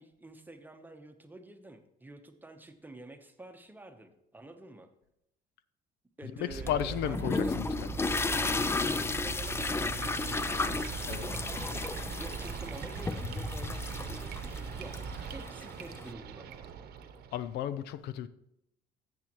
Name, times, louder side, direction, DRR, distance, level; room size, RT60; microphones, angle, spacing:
voice 1, 0.0-4.9 6.2-7.6 8.1-11.6 12.2-15.0 15.3-16.7, right 2 dB, 10° right, 0.9 m, -49 dB
voice 2, 6.2-7.9 11.1-11.3 17.3-18.3, left 10 dB, 80° left, 0.5 m, -34 dB
sound 1, 6.5-15.4, right 5 dB, 55° right, 0.5 m, -40 dB
sound 2, 6.7-16.1, left 3 dB, 15° left, 0.4 m, -34 dB
sound 3, 9.4-17.6, right 8 dB, 70° right, 0.9 m, -45 dB
13.5 x 7.6 x 3.0 m
cardioid pair, 110°, 17 cm